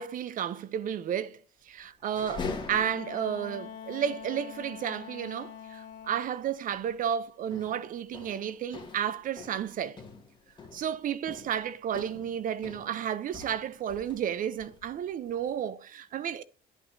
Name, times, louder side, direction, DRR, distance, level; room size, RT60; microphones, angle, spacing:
voice 1, 0.0-10.0 10.7-16.4, right 9 dB, 55° right, 0.6 m, -32 dB
sound 1, 2.0-3.4 3.9-4.0 4.2-4.4 6.0-6.3 6.7-6.9 7.5-14.3 14.6-15.5, left 4 dB, 25° left, 2.2 m, -43 dB
Wind instrument woodwind instrument, 2.7-6.4, left 8 dB, 80° left, 1.4 m, -44 dB
10.5 x 5.7 x 2.7 m
cardioid pair, 110°, 17 cm